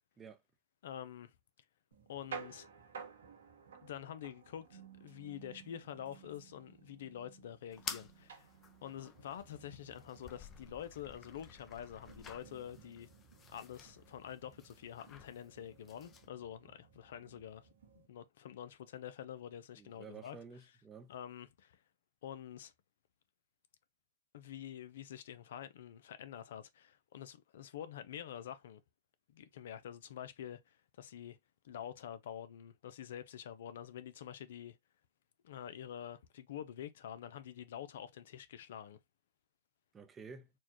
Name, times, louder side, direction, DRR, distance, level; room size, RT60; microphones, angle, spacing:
voice 1, 0.8-1.3 2.1-2.7 3.8-8.5 8.8-13.1 13.5-17.7 18.1-20.4 21.1-21.8 22.2-22.7 24.3-28.8 29.3-31.4 31.6-34.8 35.4-39.0, left 10 dB, 70° left, 0.5 m, -47 dB
sound 1, 1.9-18.1, right 6 dB, 85° right, 1.4 m, -55 dB
sound 2, 7.7-16.3, left 7 dB, 25° left, 0.7 m, -52 dB
voice 2, 19.8-21.1 39.9-40.5, right 5 dB, 20° right, 0.6 m, -51 dB
4.4 x 2.3 x 2.9 m
hypercardioid pair, 115°, 0 cm